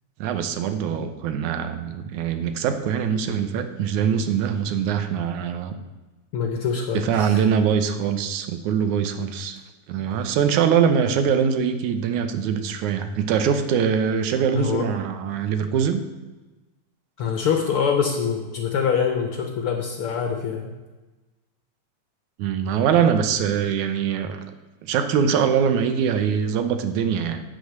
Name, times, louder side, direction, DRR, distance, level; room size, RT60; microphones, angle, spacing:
voice 1, 0.2-5.7 6.9-9.6 9.9-16.0 22.4-24.4 24.8-27.4, right 7 dB, 85° right, 8 dB, 2.3 m, -23 dB
voice 2, 6.3-7.4 14.5-14.9 17.2-20.7, left 6 dB, 65° left, 4 dB, 1.4 m, -24 dB
8.4 x 8.4 x 6.6 m, 1.2 s
omnidirectional pair, 3.4 m